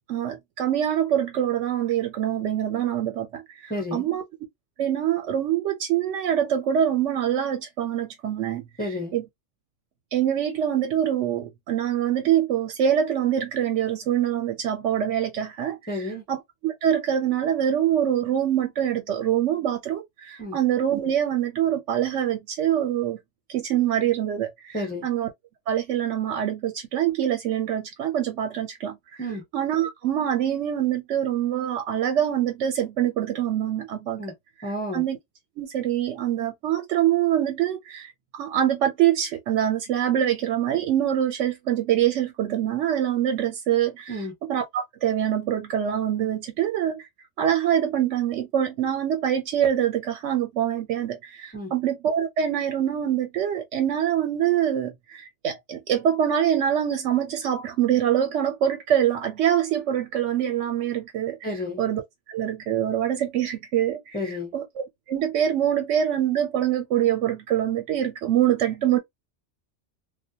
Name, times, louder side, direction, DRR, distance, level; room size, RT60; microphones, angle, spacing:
voice 1, 0.1-4.2 4.8-8.6 9.1-9.2 10.1-16.0 16.3-23.2 23.5-25.3 25.7-29.3 29.5-34.2 34.9-35.2 35.6-47.1 47.4-61.5 61.8-62.0 62.3-69.0, right 10 dB, 80° right, 0.9 m, -25 dB
voice 2, 3.7-4.0 8.8-9.1 15.9-16.2 20.4-20.6 24.7-25.0 29.2-29.4 34.2-34.3 34.6-35.0 44.1-44.3 51.5-51.7 61.4-61.8 64.1-64.5, left 1 dB, 10° left, 0.7 m, -31 dB
2.3 x 2.2 x 2.7 m
omnidirectional pair, 1.2 m